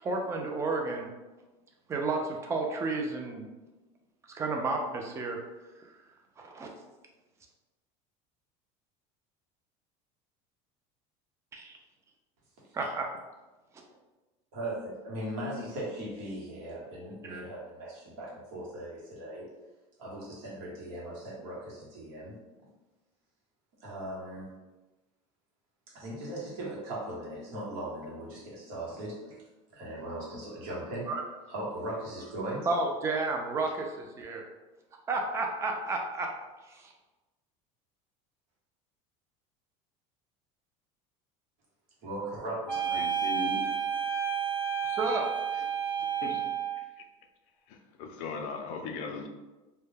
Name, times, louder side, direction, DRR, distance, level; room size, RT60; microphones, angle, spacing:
voice 1, 0.0-1.1 1.9-3.5 4.3-5.4 6.4-6.7 11.5-11.8 12.7-13.1 17.2-17.4 31.1-31.2 32.7-34.4 35.1-36.3 36.7-36.9 44.8-45.2, right 3 dB, 20° right, 2 dB, 0.3 m, -31 dB
voice 2, 14.5-19.4 20.0-22.3 23.8-24.5 25.9-29.4 29.7-31.1 31.5-32.7 42.0-43.0, right 1 dB, 75° right, -5 dB, 1.0 m, -38 dB
sound 1, 42.7-46.9, right 8 dB, 5° left, 0.7 m, -31 dB
voice 3, 43.0-43.8 46.2-46.5 46.8-47.1 47.7-49.3, left 4 dB, 60° left, 5 dB, 0.4 m, -38 dB
2.2 x 2.1 x 3.2 m, 1.1 s
cardioid pair, 150°, 16 cm